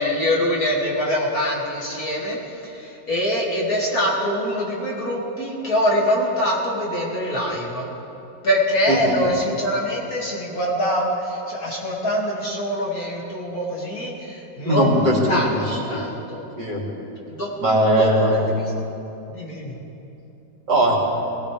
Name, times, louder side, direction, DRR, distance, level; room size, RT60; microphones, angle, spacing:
voice 1, 0.0-2.4 2.6-7.9 8.4-16.4 17.3-17.5 18.0-18.4 19.3-19.7, equal, 50° left, -4 dB, 2.8 m, -24 dB
voice 2, 14.6-15.2 15.5-15.6 15.9-16.0 16.6-16.8 17.6-18.4 20.7-20.9, right 1 dB, 60° right, -4 dB, 3.3 m, -19 dB
20.0 x 18.5 x 3.4 m, 2.9 s
omnidirectional pair, 2.1 m